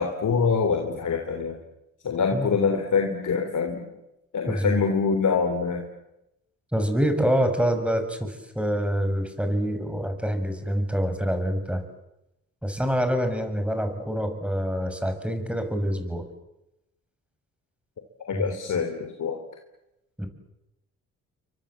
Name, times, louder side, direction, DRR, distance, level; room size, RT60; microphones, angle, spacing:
voice 1, 0.0-1.6 2.0-3.9 4.3-5.8 18.2-19.4, left 5 dB, 60° left, 4 dB, 3.6 m, -25 dB
voice 2, 4.5-4.8 6.7-11.8 12.6-16.3 18.3-18.4 20.2-20.3, equal, 5° right, 7 dB, 6.6 m, -26 dB
29.0 x 24.0 x 7.6 m, 0.88 s
supercardioid pair, 50°, 34 cm